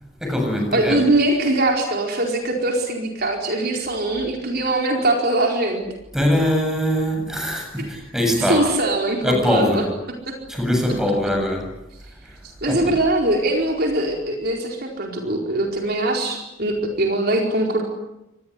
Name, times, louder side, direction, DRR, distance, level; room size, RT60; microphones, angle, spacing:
voice 1, 0.2-1.0 6.1-8.6 9.2-9.9 10.5-11.7 12.2-12.3 12.7-12.9, left 1 dB, ahead, 3 dB, 7.4 m, -22 dB
voice 2, 0.7-5.8 7.8-7.9 8.5-9.8 10.3-10.4 12.6-17.8, right 2 dB, 45° right, 1 dB, 4.5 m, -22 dB
26.5 x 20.5 x 9.8 m, 0.91 s
head